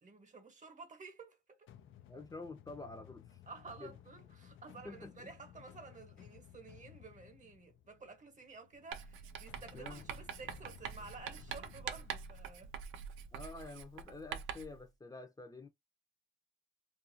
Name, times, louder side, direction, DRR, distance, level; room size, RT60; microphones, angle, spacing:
voice 1, 0.0-1.7 3.5-12.7, right 4 dB, 40° right, 1.1 m, -52 dB
sound 1, 1.7-13.6, left 10 dB, 80° left, 0.5 m, -58 dB
voice 2, 2.1-3.4 3.8-3.9 4.8-5.1 9.7-10.0 13.3-15.7, left 3 dB, 20° left, 0.7 m, -48 dB
Writing, 8.9-14.8, right 8 dB, 85° right, 0.5 m, -45 dB
2.5 x 2.3 x 2.7 m
cardioid pair, 90°, 20 cm